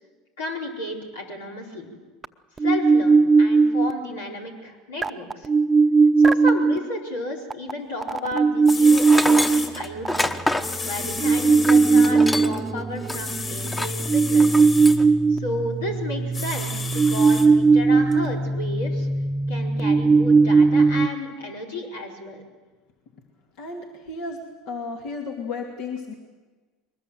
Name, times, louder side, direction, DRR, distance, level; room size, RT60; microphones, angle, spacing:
voice 1, 0.4-1.9 2.6-5.5 6.2-10.3 10.8-14.7 15.3-19.1 19.5-22.4, left 1 dB, 85° left, 0 dB, 4.3 m, -33 dB
sound 1, 2.2-2.3 2.6-3.9 5.0-6.8 7.5-7.7 8.0-21.1, right 4 dB, 20° right, 0.9 m, -19 dB
sound 2, 8.4-8.5 8.7-9.7 10.6-12.1 13.1-15.0 16.3-17.5 18.1-18.2, left 4 dB, 35° left, 4.2 m, -32 dB
Tools, 8.9-12.7 13.0-13.2 13.7-14.0 14.4-15.0, left 1 dB, 15° left, 1.3 m, -27 dB
voice 2, 23.6-24.4 24.7-26.1, left 4 dB, 65° left, 2 dB, 2.5 m, -33 dB
22.5 x 20.0 x 7.8 m, 1.3 s
hypercardioid pair, 85°, 0 cm